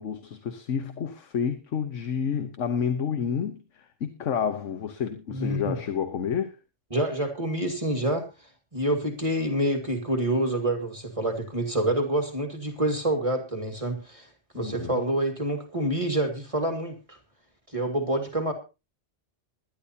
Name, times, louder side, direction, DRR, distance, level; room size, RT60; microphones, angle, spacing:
voice 1, 0.0-6.6 14.5-15.0, left 7 dB, 75° left, 1.4 m, -30 dB
voice 2, 5.3-5.8 6.9-8.2 8.7-14.3 14.5-17.2 17.7-18.5, right 1 dB, 25° right, 2.0 m, -27 dB
21.0 x 11.0 x 2.8 m
omnidirectional pair, 1.3 m